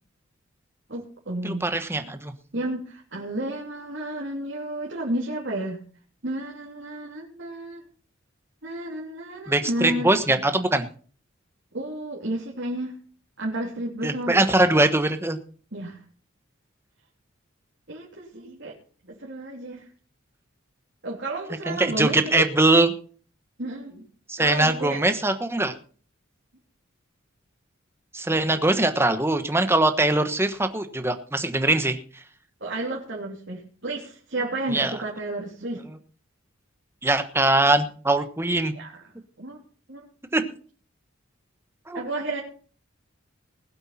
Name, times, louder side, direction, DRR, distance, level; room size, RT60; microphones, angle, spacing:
voice 1, 0.9-1.7 2.0-2.1 2.5-5.8 6.2-7.8 8.6-10.4 11.7-12.9 13.4-14.7 15.7-16.0 17.9-18.7 19.1-19.9 21.0-22.5 23.6-24.0 24.4-25.1 28.3-28.6 32.6-35.8 38.7-39.1 39.4-39.6 39.9-40.1 40.3-40.4 41.9-42.4, right 1 dB, 60° right, -3 dB, 3.0 m, -32 dB
voice 2, 1.4-2.3 9.5-10.9 14.0-15.4 21.7-22.9 24.3-25.7 28.1-32.0 34.7-34.9 37.0-38.7 40.3-40.4 41.9-42.0, right 2 dB, 10° right, 8 dB, 1.2 m, -22 dB
20.5 x 8.1 x 4.2 m, 0.42 s
head